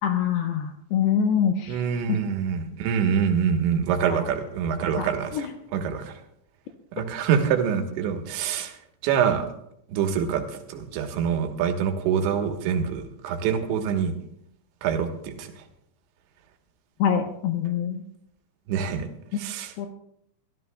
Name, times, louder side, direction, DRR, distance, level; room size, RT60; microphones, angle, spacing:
voice 1, 0.0-1.8 2.1-2.2 4.1-4.2 5.0-5.4 17.0-18.0 19.8-19.9, left 8 dB, 75° left, 4 dB, 2.6 m, -25 dB
voice 2, 1.7-6.1 6.9-8.8 9.0-9.5 9.9-14.1 14.8-15.7 18.7-19.7, right 7 dB, 75° right, 5 dB, 3.5 m, -25 dB
23.0 x 14.0 x 2.3 m, 0.74 s
omnidirectional pair, 5.3 m